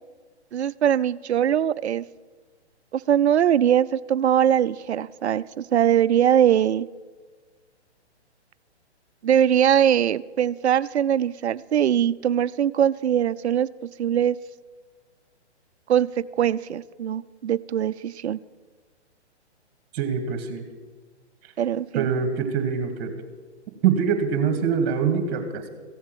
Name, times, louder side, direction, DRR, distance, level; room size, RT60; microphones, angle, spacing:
voice 1, 0.5-2.0 2.9-6.9 9.2-13.7 14.0-14.4 15.9-16.1 16.4-18.4 21.6-22.1, right 9 dB, 70° right, 17 dB, 0.6 m, -21 dB
voice 2, 19.9-20.6 21.4-21.5 21.9-23.1 23.8-25.7, right 7 dB, 35° right, 6 dB, 2.3 m, -24 dB
15.5 x 7.3 x 9.2 m, 1.4 s
hypercardioid pair, 135°, 35 cm